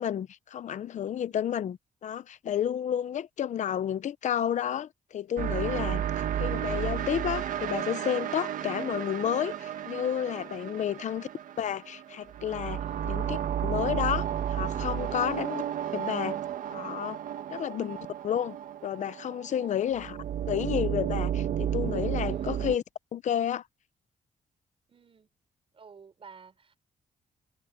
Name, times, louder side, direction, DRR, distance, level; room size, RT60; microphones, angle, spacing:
voice 1, 0.0-1.8 2.0-11.3 11.6-13.4 13.6-15.6 15.9-16.4 16.7-17.2 17.5-18.0 18.2-18.6 18.8-20.2 20.5-22.8 23.1-23.6, left 9 dB, 60° left, 0.8 m, -31 dB
sound 1, 5.4-22.8, right 10 dB, 75° right, 1.3 m, -32 dB
voice 2, 10.6-11.0 12.8-13.1 19.6-19.9 22.2-22.6 24.9-25.3 25.7-26.8, right 5 dB, 40° right, 5.3 m, -55 dB
cardioid pair, 110°, 14 cm